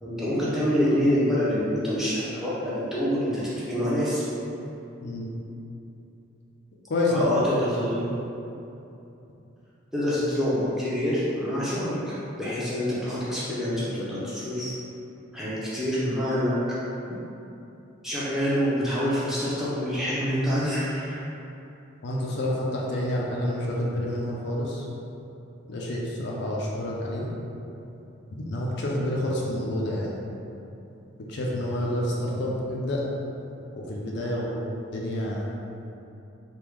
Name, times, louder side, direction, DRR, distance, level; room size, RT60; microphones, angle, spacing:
voice 1, 0.0-4.2 7.1-8.1 9.9-14.7 15.3-16.5 18.0-21.3, equal, ahead, -10 dB, 0.6 m, -26 dB
voice 2, 6.9-7.3 8.0-8.1 22.0-24.8 25.7-27.3 28.4-30.1 31.3-33.0 33.7-34.6 34.9-35.5, left 1 dB, 55° left, -3 dB, 0.4 m, -28 dB
3.4 x 2.2 x 3.1 m, 2.9 s
head